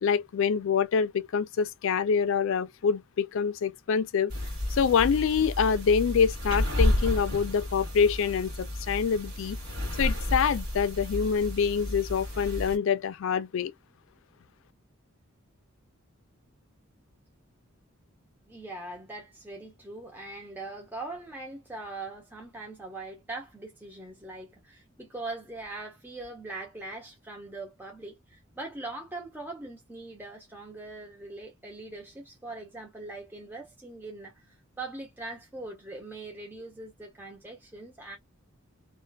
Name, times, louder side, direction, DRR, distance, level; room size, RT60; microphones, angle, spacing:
voice 1, 0.0-4.3 4.7-9.6 10.0-13.7, left 6 dB, 65° left, 0.3 m, -26 dB
sound 1, 4.3-12.8, left 1 dB, 80° right, 1.4 m, -31 dB
voice 2, 18.5-34.4 34.8-38.2, right 2 dB, 10° right, 0.7 m, -41 dB
2.4 x 2.3 x 2.2 m
head